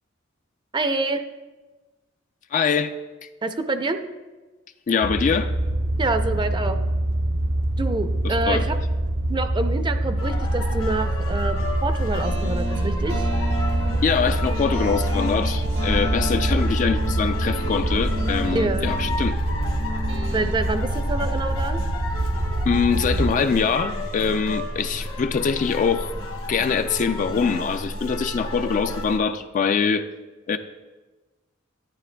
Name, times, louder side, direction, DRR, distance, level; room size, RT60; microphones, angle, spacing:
voice 1, 0.7-1.2 3.4-4.0 6.0-6.8 7.8-8.8 9.3-13.3 18.5-18.9 20.3-21.8, right 2 dB, 25° right, 8 dB, 0.5 m, -26 dB
voice 2, 2.5-2.9 3.2-3.3 4.9-5.5 8.2-8.6 14.0-19.4 22.7-26.1 26.5-30.1 30.5-30.6, left 6 dB, 40° left, 9 dB, 0.3 m, -23 dB
sound 1, 5.0-23.3, right 1 dB, 65° right, 0.7 m, -25 dB
sound 2, 10.2-29.2, left 1 dB, 80° left, 1.0 m, -31 dB
sound 3, 12.2-20.5, equal, 90° right, 1.3 m, -33 dB
11.5 x 9.7 x 2.2 m, 1.2 s
head